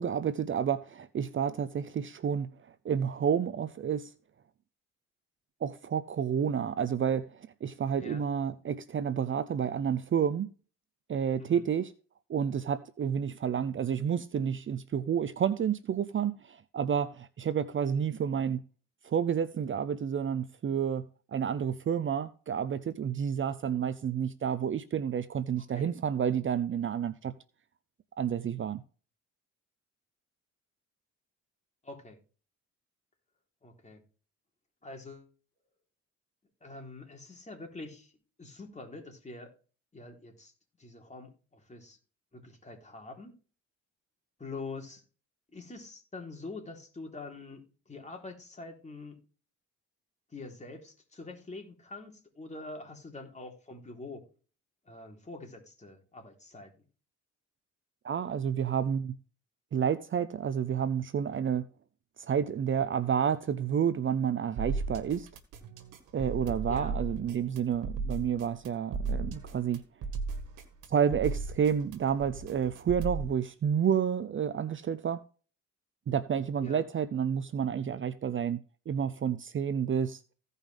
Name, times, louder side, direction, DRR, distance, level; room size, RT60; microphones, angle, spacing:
voice 1, 0.0-2.5 2.8-4.1 5.6-10.5 11.1-11.9 12.3-18.6 19.0-27.3 28.2-28.8 58.0-59.2 59.7-61.7 62.2-65.3 66.1-69.8 70.9-75.2 76.1-78.6 78.9-80.2, right 8 dB, 40° right, 0.7 m, -30 dB
voice 2, 31.8-32.2 33.6-34.0 34.8-35.3 36.6-38.1 38.4-39.5 39.9-40.5 40.8-42.0 42.3-43.4 44.4-45.0 45.5-49.2 50.3-54.3 54.9-56.7 66.7-67.0 76.6-76.8, left 3 dB, 25° left, 3.8 m, -45 dB
sound 1, 64.6-73.3, right 4 dB, 90° right, 1.8 m, -36 dB
16.0 x 5.5 x 3.5 m
cardioid pair, 90°, 30 cm